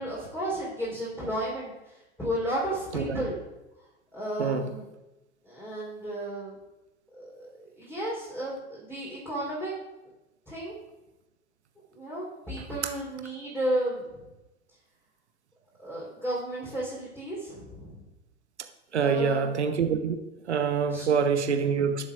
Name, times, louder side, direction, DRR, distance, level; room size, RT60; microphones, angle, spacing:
voice 1, 0.0-3.4 4.1-4.8 5.4-6.6 7.1-9.7 10.5-10.8 11.9-14.3 15.8-18.0 18.9-19.5 20.9-21.1, right 1 dB, 5° left, -8 dB, 3.8 m, -33 dB
voice 2, 18.9-20.2 20.5-22.1, right 6 dB, 75° right, 7 dB, 1.0 m, -25 dB
18.5 x 7.3 x 2.5 m, 1.0 s
figure-of-eight pair, 80°, 34 cm